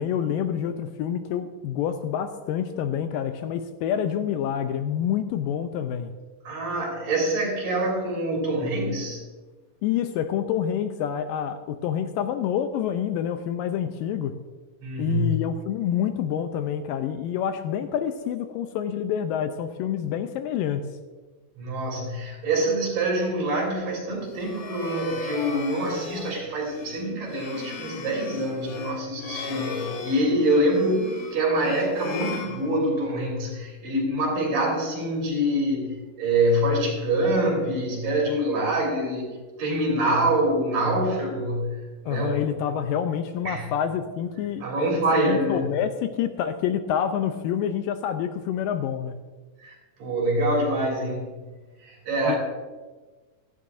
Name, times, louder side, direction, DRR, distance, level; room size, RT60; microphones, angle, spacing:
voice 1, 0.0-6.1 9.8-14.4 15.0-20.8 42.1-49.2 52.3-52.4, left 9 dB, 80° left, 9 dB, 2.2 m, -27 dB
voice 2, 6.4-9.2 14.8-15.3 21.6-42.4 43.5-43.7 44.6-45.6 49.6-51.3 51.8-52.4, right 1 dB, 60° right, -2 dB, 4.8 m, -25 dB
sound 1, 24.2-33.2, left 5 dB, 65° left, 2.0 m, -37 dB
16.5 x 14.0 x 2.6 m, 1.3 s
omnidirectional pair, 4.2 m